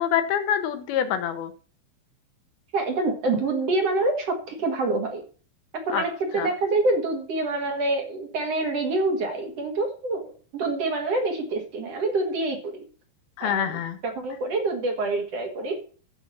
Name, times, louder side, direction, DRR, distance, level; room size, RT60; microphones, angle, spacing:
voice 1, 0.0-1.5 5.9-6.0 6.3-6.5 13.4-14.0, left 9 dB, 75° left, 9 dB, 2.3 m, -25 dB
voice 2, 2.7-5.2 5.9-10.3 10.5-12.8 13.4-13.8 14.1-15.8, right 2 dB, 65° right, 4 dB, 1.6 m, -26 dB
13.0 x 4.5 x 7.0 m, 0.40 s
omnidirectional pair, 5.4 m